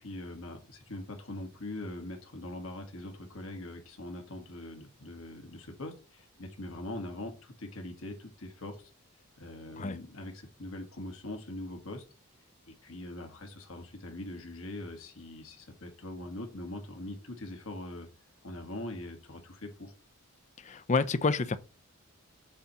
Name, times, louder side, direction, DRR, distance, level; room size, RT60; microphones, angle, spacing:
voice 1, 0.0-8.9 9.4-12.0 12.7-18.1 18.4-19.9, left 1 dB, 70° left, 1.5 m, -42 dB
voice 2, 20.6-21.6, left 4 dB, 30° left, 0.4 m, -28 dB
7.3 x 2.9 x 5.5 m
head